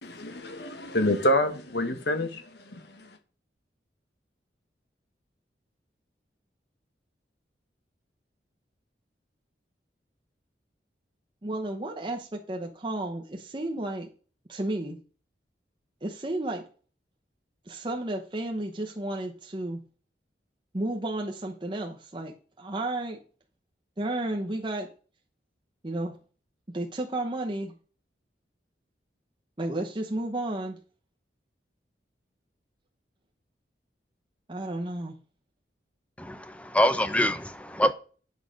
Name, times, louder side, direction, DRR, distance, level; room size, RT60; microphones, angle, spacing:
voice 1, 0.0-2.4 2.7-2.8, left 1 dB, 65° left, 1.4 m, -27 dB
voice 2, 11.4-14.1 14.5-15.0 16.0-16.6 17.7-19.8 20.7-23.2 24.0-24.9 25.8-26.2 26.7-27.7 29.6-30.8 34.5-35.1, right 1 dB, 25° right, 0.9 m, -32 dB
voice 3, 36.2-37.9, equal, 5° left, 0.6 m, -25 dB
8.5 x 6.5 x 5.2 m
head